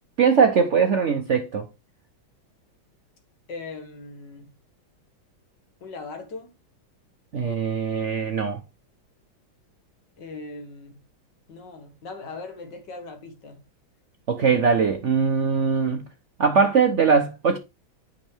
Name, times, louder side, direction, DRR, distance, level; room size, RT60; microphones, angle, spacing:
voice 1, 0.2-1.7 7.3-8.6 14.3-16.1 16.4-17.6, right 5 dB, 70° right, 0.6 m, -21 dB
voice 2, 3.5-4.5 5.8-6.5 10.2-10.9 11.5-13.6, left 3 dB, 60° left, 2.0 m, -39 dB
8.9 x 5.6 x 3.3 m
omnidirectional pair, 2.2 m